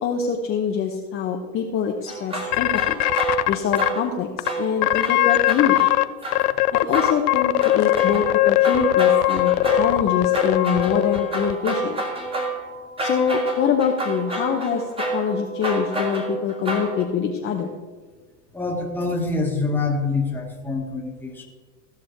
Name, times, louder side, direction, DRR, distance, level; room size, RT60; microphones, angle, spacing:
voice 1, 0.0-3.0 3.5-5.9 6.7-12.0 13.0-14.8 15.1-17.7, left 7 dB, 25° left, 1 dB, 0.8 m, -24 dB
sound 1, 2.1-4.2 4.4-6.7 6.9-17.0, right 2 dB, 10° right, 1.6 m, -29 dB
sound 2, 2.5-3.9 4.4-4.5 4.8-6.0 6.3-11.5, left 16 dB, 70° left, 0.6 m, -20 dB
voice 2, 18.5-21.4, left 3 dB, 5° left, 0 dB, 1.4 m, -25 dB
15.5 x 6.2 x 4.5 m, 1.4 s
supercardioid pair, 140°, 49 cm